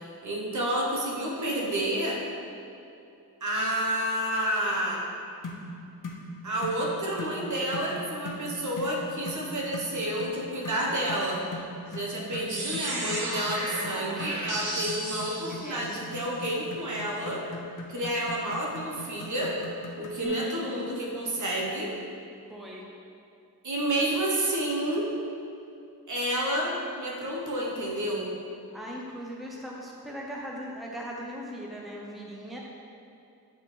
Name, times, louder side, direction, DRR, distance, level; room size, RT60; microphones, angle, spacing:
voice 1, 0.2-2.2 3.4-5.0 6.4-11.4 11.9-17.5 17.9-19.6 20.0-21.9 23.6-25.1 26.1-28.3, right 1 dB, 50° right, -2 dB, 1.4 m, -30 dB
sound 1, 5.4-5.7 6.0-6.2 6.6-6.8 7.2-7.4 7.7-7.9 8.3-8.5 8.8-9.0 9.3-9.4 9.7-9.9 10.2-10.4 10.6-20.3, left 2 dB, 55° left, 1.1 m, -40 dB
sound 2, 12.5-16.2, right 1 dB, 85° right, 1.6 m, -33 dB
voice 2, 15.5-15.8 20.2-20.7 22.5-22.8 28.7-32.6, equal, ahead, -3 dB, 0.9 m, -39 dB
8.2 x 5.5 x 3.5 m, 2.6 s
wide cardioid pair, 95°, 39 cm